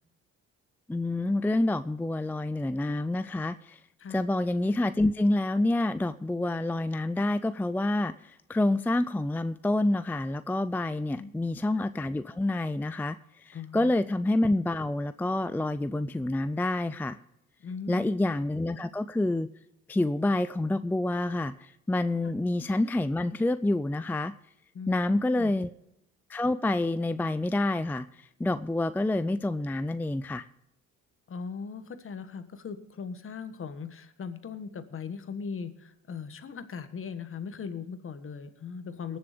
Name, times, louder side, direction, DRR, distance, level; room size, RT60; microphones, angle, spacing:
voice 1, 0.9-3.8 4.1-17.2 17.9-19.5 19.9-24.3 24.9-25.7 26.3-28.1 28.4-30.5, left 2 dB, 5° left, 13 dB, 0.4 m, -28 dB
voice 2, 13.5-13.9 17.6-18.1 22.2-22.3 24.7-25.5 31.3-39.2, left 6 dB, 45° left, 11 dB, 1.4 m, -39 dB
19.5 x 7.1 x 5.0 m, 0.81 s
cardioid pair, 90°, 30 cm